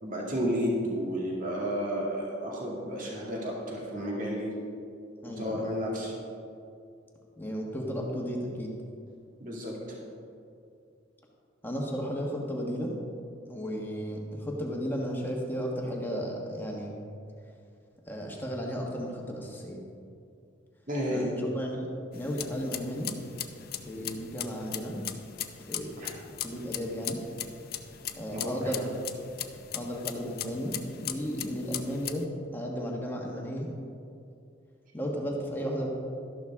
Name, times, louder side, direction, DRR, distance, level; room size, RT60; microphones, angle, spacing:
voice 1, 0.0-4.5 5.2-6.1 9.4-10.0 20.9-21.2 26.0-26.1 28.3-28.5, equal, 45° right, -3 dB, 2.3 m, -32 dB
voice 2, 5.2-5.7 7.4-8.7 11.6-12.9 13.5-16.9 18.1-19.8 21.1-23.1 23.8-25.1 25.7-26.1 26.4-27.2 28.2-29.0 29.7-33.7 34.9-35.9, equal, 10° left, -1 dB, 1.4 m, -34 dB
sound 1, 22.1-32.2, left 11 dB, 50° left, 0.6 m, -39 dB
12.5 x 11.5 x 3.7 m, 2.4 s
head